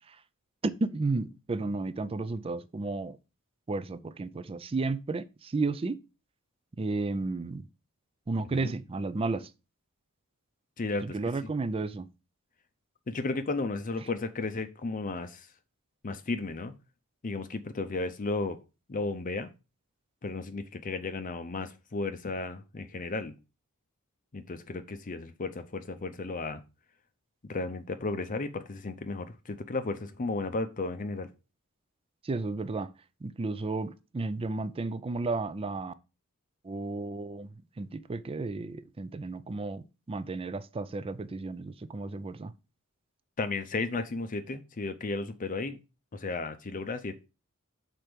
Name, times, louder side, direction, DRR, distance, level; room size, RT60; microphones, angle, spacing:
voice 1, 0.6-3.2 3.7-6.0 6.8-7.7 8.3-9.5 11.0-12.1 32.2-32.9 33.2-35.9 36.6-37.5 37.8-42.5, right 3 dB, 25° right, 0.4 m, -33 dB
voice 2, 10.8-11.5 13.1-15.5 16.0-16.7 17.2-18.6 18.9-19.5 20.2-23.3 24.3-26.6 27.4-31.3 43.4-45.8 46.1-47.3, left 3 dB, 40° left, 0.6 m, -34 dB
6.1 x 4.4 x 5.1 m
head